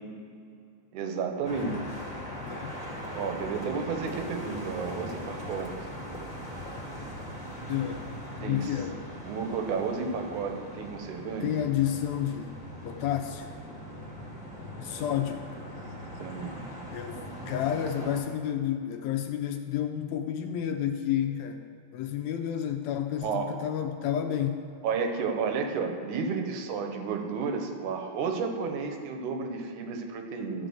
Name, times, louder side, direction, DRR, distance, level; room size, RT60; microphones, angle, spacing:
voice 1, 0.9-1.9 3.1-5.7 8.4-8.8 9.2-11.5 14.9-15.3 16.2-16.7 23.2-23.5 24.8-30.7, right 5 dB, 80° right, 4 dB, 2.4 m, -32 dB
sound 1, 1.4-18.2, equal, 20° left, 1.0 m, -40 dB
voice 2, 2.4-2.7 7.7-8.1 8.4-9.1 11.4-13.5 14.8-15.5 16.9-24.6, left 10 dB, 80° left, 6 dB, 1.7 m, -31 dB
12.5 x 5.0 x 7.8 m, 2.5 s
omnidirectional pair, 3.5 m